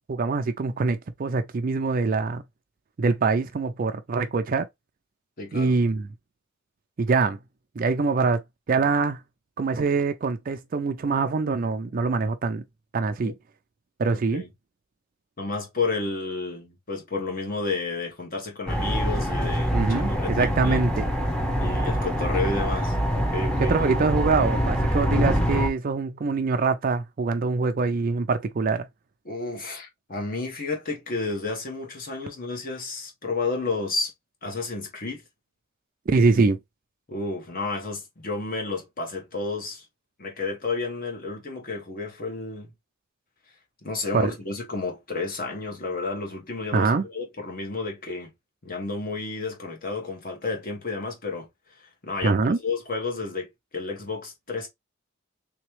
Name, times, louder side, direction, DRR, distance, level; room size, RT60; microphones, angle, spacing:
voice 1, 0.0-2.4 3.0-4.7 5.5-6.1 7.0-7.4 7.8-8.4 8.7-9.2 9.6-12.6 12.9-13.3 14.0-14.4 19.7-21.1 23.6-28.9 36.1-36.6 44.1-44.3 46.7-47.0 52.2-52.6, right 4 dB, 45° right, 0.4 m, -24 dB
voice 2, 5.4-5.7 13.2-13.3 14.3-14.5 15.4-20.8 21.6-23.8 29.2-34.1 34.4-35.2 37.1-39.9 40.2-42.7 43.8-48.3 48.6-51.5 52.0-52.4 52.6-54.7, left 3 dB, 45° left, 1.2 m, -31 dB
sound 1, 18.7-25.7, equal, 5° left, 0.8 m, -25 dB
3.5 x 3.0 x 3.1 m
head